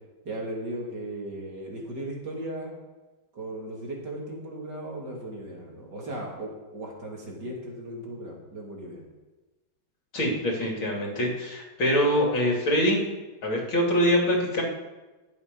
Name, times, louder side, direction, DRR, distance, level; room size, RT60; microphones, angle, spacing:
voice 1, 0.2-2.7 3.3-9.0, right 1 dB, 50° right, -2 dB, 3.2 m, -37 dB
voice 2, 10.1-13.0 13.4-14.6, equal, 65° left, 0 dB, 3.5 m, -24 dB
21.0 x 7.1 x 5.4 m, 1.2 s
omnidirectional pair, 2.4 m